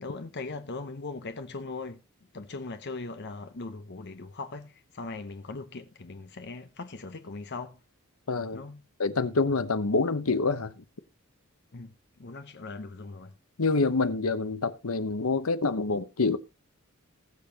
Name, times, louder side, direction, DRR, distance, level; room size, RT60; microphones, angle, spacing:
voice 1, 0.0-2.0 2.3-7.8 8.5-8.8 11.7-11.9 12.2-13.3, left 3 dB, 50° left, 0.8 m, -39 dB
voice 2, 8.3-8.6 9.0-10.8 13.6-16.4, left 3 dB, 85° left, 1.0 m, -26 dB
20.5 x 6.8 x 2.9 m
head